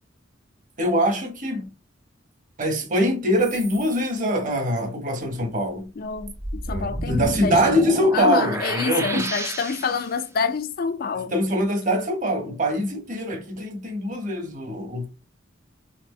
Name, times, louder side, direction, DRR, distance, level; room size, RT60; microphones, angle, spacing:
voice 1, 0.8-1.7 2.6-5.9 6.7-9.3 11.3-15.1, equal, 40° right, 1.2 m, -23 dB
sound 1, 3.4-4.0 5.4-5.5 6.1-10.2, right 2 dB, 15° right, 0.4 m, -31 dB
voice 2, 6.0-7.8 8.1-11.3, left 5 dB, 50° left, 0.4 m, -27 dB
4.3 x 3.7 x 3.2 m
head